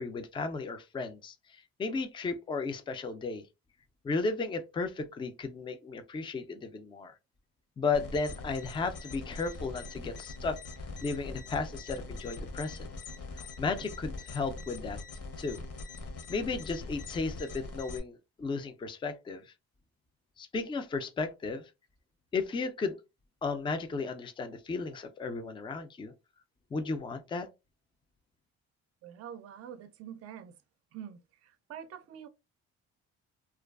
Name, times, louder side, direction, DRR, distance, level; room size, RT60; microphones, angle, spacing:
voice 1, 0.0-3.4 4.0-7.1 7.8-10.5 11.0-12.9 13.4-15.0 15.4-15.6 16.3-19.5 20.4-21.6 22.3-23.0 23.4-26.1 26.7-27.5, left 4 dB, 15° left, 0.3 m, -34 dB
sound 1, 7.9-18.0, left 3 dB, 55° left, 0.7 m, -42 dB
voice 2, 29.0-30.6 30.9-32.3, right 9 dB, 55° right, 0.4 m, -46 dB
2.4 x 2.3 x 2.3 m
cardioid pair, 90°, 30 cm